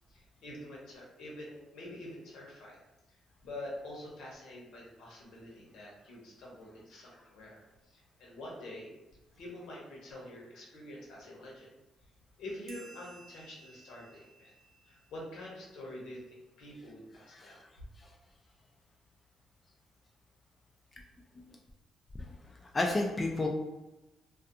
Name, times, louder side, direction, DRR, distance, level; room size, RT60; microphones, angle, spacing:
voice 1, 0.1-2.8 3.4-8.9 9.4-11.7 12.4-14.5 14.8-17.6, left 1 dB, 80° left, -3 dB, 0.8 m, -46 dB
sound 1, 12.7-15.7, right 2 dB, 70° right, 0.5 m, -57 dB
voice 2, 22.7-23.5, left 2 dB, 25° left, 0 dB, 0.3 m, -31 dB
2.4 x 2.3 x 2.7 m, 1.0 s
cardioid pair, 95°, 0 cm